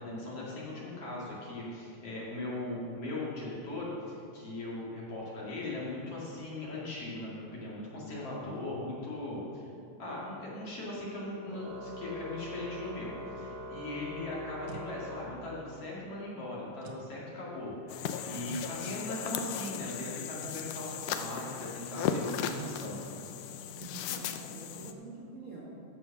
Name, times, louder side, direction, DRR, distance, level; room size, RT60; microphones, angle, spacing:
voice 1, 0.0-9.7 10.0-23.0, left 2 dB, 50° left, -6 dB, 3.0 m, -39 dB
Organ, 11.5-16.0, left 1 dB, 55° right, 3.5 m, -43 dB
sound 1, 14.7-14.9 16.8-17.1 18.5-18.7 20.4-20.6 22.6-22.8, right 7 dB, 85° right, 2.4 m, -46 dB
sound 2, 17.9-24.9, left 8 dB, 80° left, 2.1 m, -37 dB
voice 2, 23.7-25.8, right 2 dB, 35° right, -6 dB, 1.4 m, -47 dB
15.0 x 5.8 x 5.8 m, 2.5 s
omnidirectional pair, 3.7 m